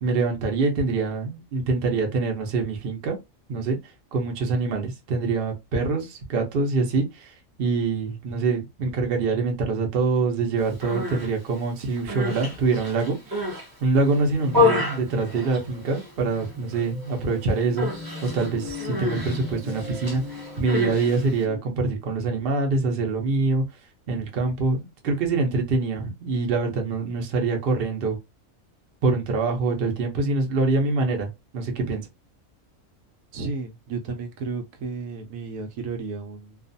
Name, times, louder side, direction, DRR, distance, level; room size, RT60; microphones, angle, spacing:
voice 1, 0.0-3.2 3.5-3.8 4.1-7.3 7.6-13.5 13.8-17.9 18.3-20.2 20.6-23.6 24.1-28.2 29.0-32.1, right 3 dB, 50° right, 0.8 m, -25 dB
Human voice, 10.7-11.3 11.9-13.7 14.1-16.1 16.4-16.8 17.1-17.3 17.8-21.4, left 3 dB, 20° right, 0.6 m, -28 dB
sound 1, 13.9-21.6, left 4 dB, 10° left, 0.8 m, -40 dB
voice 2, 33.3-36.6, right 4 dB, 85° right, 1.0 m, -33 dB
2.4 x 2.4 x 2.5 m
omnidirectional pair, 1.4 m